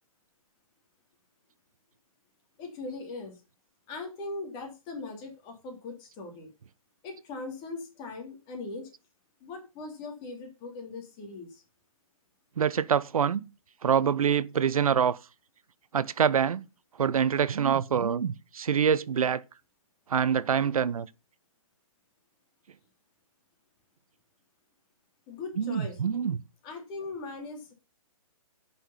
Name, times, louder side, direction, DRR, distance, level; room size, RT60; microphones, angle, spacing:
voice 1, 2.6-3.4 3.9-6.5 7.0-8.9 9.4-11.6 25.3-26.0 26.6-27.7, left 3 dB, 25° left, 3.2 m, -40 dB
voice 2, 12.6-13.4 13.8-15.2 15.9-16.6 17.0-19.4 20.1-21.1 25.6-26.4, right 7 dB, 75° right, 0.7 m, -25 dB
10.0 x 5.8 x 5.7 m
hypercardioid pair, 140°, 19 cm